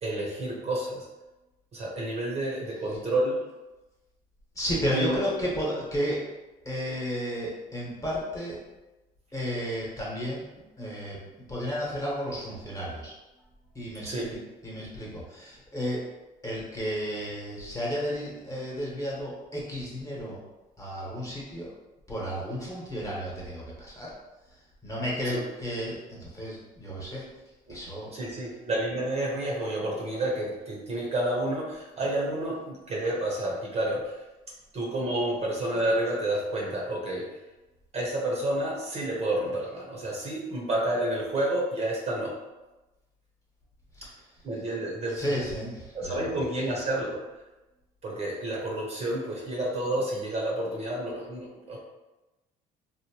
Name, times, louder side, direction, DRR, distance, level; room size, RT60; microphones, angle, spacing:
voice 1, 0.0-1.1 1.7-3.4 4.9-5.2 14.0-14.3 25.2-25.4 27.7-27.8 28.1-34.1 34.7-37.3 37.9-42.3 44.4-45.2 45.9-47.2 48.0-51.8, right 1 dB, 40° right, -3 dB, 0.7 m, -29 dB
voice 2, 4.5-6.3 6.6-8.6 9.3-10.4 10.8-11.2 11.5-13.1 13.7-16.0 16.4-20.4 20.8-21.7 22.1-24.1 24.8-27.3 27.7-28.1 43.9-44.2 45.1-46.4, equal, 20° left, -6 dB, 1.0 m, -33 dB
2.8 x 2.1 x 2.8 m, 1.1 s
cardioid pair, 110°, 17 cm